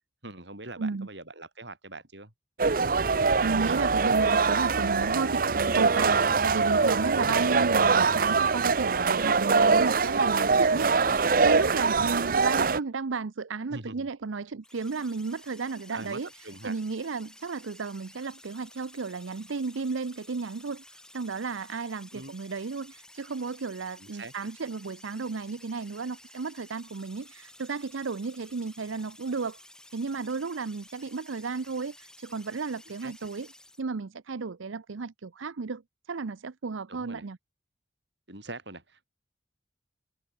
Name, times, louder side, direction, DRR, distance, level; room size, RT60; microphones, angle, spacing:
voice 1, 0.2-2.3 7.2-7.5 13.7-14.1 15.9-16.2 16.4-16.8 22.1-22.3 24.0-24.3 33.0-33.1 36.9-37.2 38.3-39.0, right 2 dB, 65° right, 6.8 m, -42 dB
voice 2, 0.8-1.1 3.4-29.6 29.9-33.5 33.8-35.8 36.1-37.4, right 4 dB, 90° right, 0.7 m, -33 dB
sound 1, 2.6-12.8, right 4 dB, 45° right, 0.7 m, -23 dB
sound 2, 14.6-33.8, left 1 dB, 5° left, 5.6 m, -53 dB
head